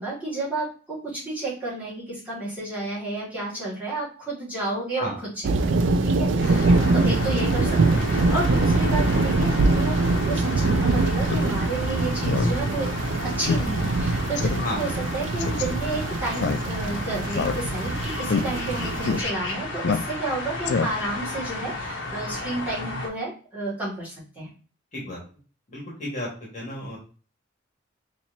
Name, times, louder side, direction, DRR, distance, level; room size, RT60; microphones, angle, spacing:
voice 1, 0.0-5.1 5.6-6.7 6.9-12.9 13.2-24.5, right 2 dB, 10° right, -10 dB, 2.0 m, -31 dB
sound 1, 5.4-19.2, right 3 dB, 70° right, 0.4 m, -23 dB
sound 2, 6.4-23.1, left 2 dB, 80° left, 0.9 m, -33 dB
Speech synthesizer, 11.2-11.5 11.8-11.9 12.2-12.5 12.9-13.0 13.5-13.6 13.9-14.0 14.4-14.6 15.4-15.6 16.3-16.9 17.3-17.9 18.2-18.4 19.0-19.2 19.8-20.3 20.6-21.2, left 4 dB, 60° left, 0.4 m, -25 dB
voice 2, 25.7-26.3 26.5-27.0, left 1 dB, 40° left, -4 dB, 1.6 m, -32 dB
4.2 x 2.9 x 2.7 m, 0.38 s
head